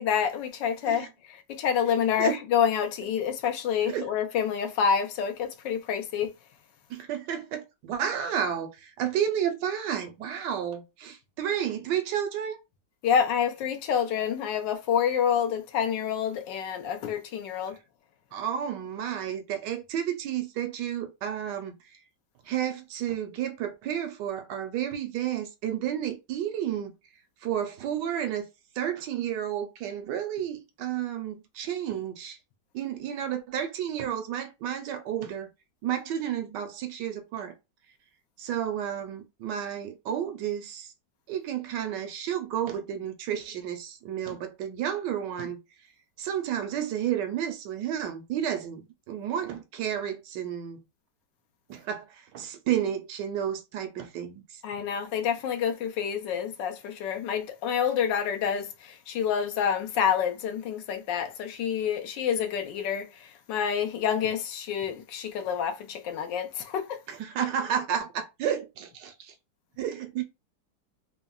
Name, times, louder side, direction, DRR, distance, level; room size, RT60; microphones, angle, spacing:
voice 1, 0.0-6.3 13.0-17.8 54.6-67.0, left 8 dB, 80° left, 1.3 m, -28 dB
voice 2, 6.9-12.6 18.3-21.8 22.4-26.9 27.4-28.4 28.8-32.4 32.7-35.5 35.8-37.5 38.4-40.9 41.3-45.6 46.2-50.8 51.7-54.6 67.1-69.3 69.8-70.2, right 9 dB, 75° right, 1.2 m, -31 dB
3.6 x 2.0 x 2.3 m
omnidirectional pair, 2.0 m